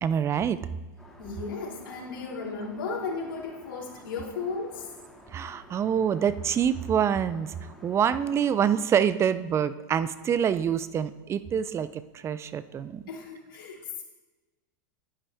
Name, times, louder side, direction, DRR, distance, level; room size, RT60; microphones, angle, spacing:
voice 1, 0.0-0.6 5.3-7.5 7.8-13.0, right 8 dB, 25° right, 15 dB, 0.5 m, -26 dB
Aircraft, 1.0-8.7, equal, ahead, 2.1 m, -52 dB
voice 2, 1.2-4.9 13.1-14.0, left 4 dB, 80° left, -2 dB, 3.3 m, -35 dB
11.0 x 10.5 x 3.5 m, 1.2 s
hypercardioid pair, 115°, 11 cm